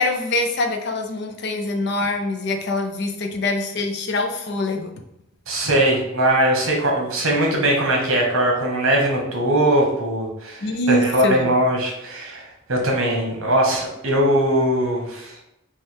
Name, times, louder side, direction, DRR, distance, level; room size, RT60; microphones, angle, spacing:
voice 1, 0.0-4.9 10.6-11.5, left 2 dB, 55° left, 4 dB, 0.5 m, -24 dB
voice 2, 5.5-15.4, right 1 dB, 85° right, 0 dB, 1.1 m, -20 dB
3.3 x 2.3 x 4.3 m, 0.83 s
head